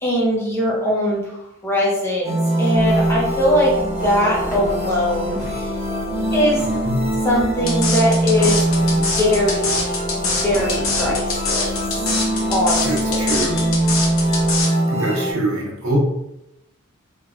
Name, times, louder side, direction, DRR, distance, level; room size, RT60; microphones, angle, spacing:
voice 1, 0.0-5.7 6.3-6.7 7.2-9.9 10.2-11.8 12.5-13.5, equal, 10° left, -4 dB, 0.5 m, -21 dB
sound 1, 2.2-15.3, right 1 dB, 30° right, 0.6 m, -22 dB
sound 2, 2.7-14.6, equal, 85° left, 1.0 m, -34 dB
voice 2, 6.6-7.0 12.3-12.5 12.8-13.6 14.9-16.0, right 2 dB, 85° right, -2 dB, 0.8 m, -24 dB
sound 3, 7.7-14.7, left 4 dB, 70° left, 0.6 m, -23 dB
3.1 x 2.1 x 2.4 m, 0.85 s
head